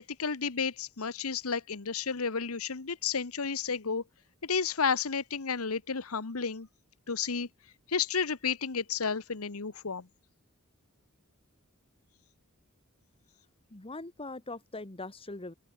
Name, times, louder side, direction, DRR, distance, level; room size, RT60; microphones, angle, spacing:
voice 1, 0.0-4.0 4.4-6.7 7.1-7.5 7.9-10.1, left 5 dB, 90° left, 1.2 m, -32 dB
voice 2, 13.7-15.5, left 2 dB, 25° left, 1.5 m, -41 dB
open air
head